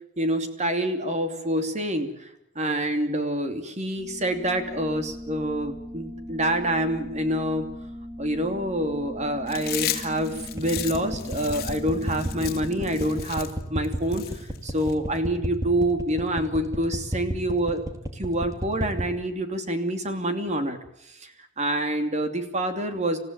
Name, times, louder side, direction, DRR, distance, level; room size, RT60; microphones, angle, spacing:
voice 1, 0.2-2.3 2.5-7.7 8.2-17.9 18.1-20.8 21.1-21.3 21.6-23.2, right 1 dB, 35° right, 7 dB, 2.9 m, -27 dB
sound 1, 4.0-13.2, equal, ahead, 3.5 m, -39 dB
Chewing mastication, 9.5-14.9, left 12 dB, 50° left, 2.7 m, -34 dB
sound 2, 10.6-19.1, right 1 dB, 15° right, 2.7 m, -30 dB
27.5 x 15.5 x 9.2 m, 0.81 s
head